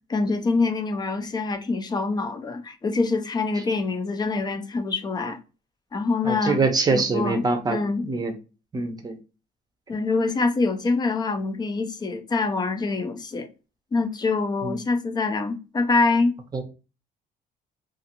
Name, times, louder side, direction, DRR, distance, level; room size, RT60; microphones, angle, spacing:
voice 1, 0.1-5.4 5.9-6.6 6.9-8.1 9.9-13.5 13.9-16.4, left 3 dB, 25° left, 0.5 m, -25 dB
voice 2, 6.2-8.3 8.7-9.2 14.6-14.8 16.5-16.6, right 3 dB, 25° right, 0.7 m, -24 dB
2.5 x 2.4 x 2.8 m
cardioid pair, 110°, 17 cm